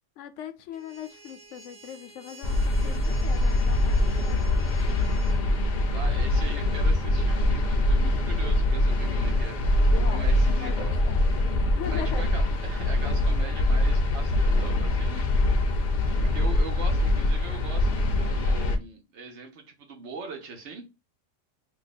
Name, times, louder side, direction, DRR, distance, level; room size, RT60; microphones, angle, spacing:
voice 1, 0.2-5.0 9.9-10.3 10.5-11.3 11.6-12.2, left 9 dB, 75° left, 0.9 m, -40 dB
sound 1, 0.7-5.4, right 3 dB, 35° right, 0.8 m, -50 dB
sound 2, 2.4-18.8, left 1 dB, 55° left, 0.5 m, -23 dB
voice 2, 5.9-9.6 10.1-11.0 11.8-15.3 16.2-20.9, right 4 dB, 70° right, 1.2 m, -41 dB
2.8 x 2.3 x 4.0 m
omnidirectional pair, 1.3 m